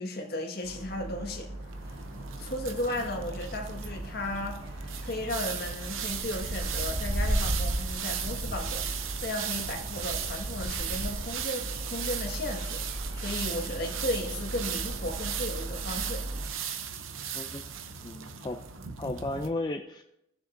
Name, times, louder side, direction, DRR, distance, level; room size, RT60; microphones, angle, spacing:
voice 1, 0.0-1.5 2.3-4.6 5.0-16.2, left 1 dB, 50° left, 1 dB, 1.7 m, -35 dB
sound 1, 0.6-16.5, right 1 dB, 60° right, 1.8 m, -36 dB
sound 2, 1.7-19.5, right 8 dB, 80° right, 0.7 m, -37 dB
voice 2, 18.0-18.6 19.0-20.0, left 2 dB, 20° left, 4 dB, 0.4 m, -34 dB
18.5 x 6.8 x 2.6 m, 0.83 s
head